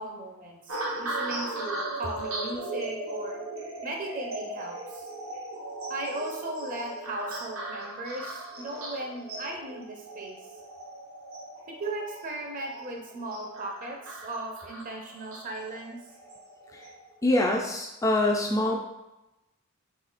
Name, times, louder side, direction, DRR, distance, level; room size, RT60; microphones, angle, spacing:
voice 1, 0.0-3.4 3.8-5.0 5.9-10.4 11.7-16.0, right 2 dB, 40° right, 1 dB, 0.7 m, -37 dB
sound 1, 0.7-17.2 17.8-18.1, right 2 dB, 65° right, 0.9 m, -38 dB
voice 2, 17.2-18.8, left 1 dB, 15° left, 0 dB, 0.3 m, -24 dB
4.0 x 2.7 x 4.0 m, 0.95 s
head